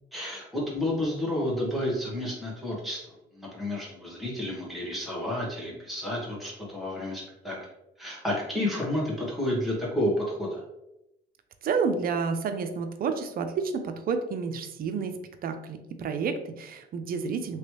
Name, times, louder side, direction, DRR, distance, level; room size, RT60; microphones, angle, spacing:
voice 1, 0.1-3.0 3.3-7.6 8.0-10.6, left 1 dB, ahead, -5 dB, 1.4 m, -30 dB
voice 2, 11.6-17.6, right 5 dB, 50° right, 7 dB, 0.5 m, -30 dB
3.2 x 2.9 x 3.0 m, 0.87 s
cardioid pair, 95°, 19 cm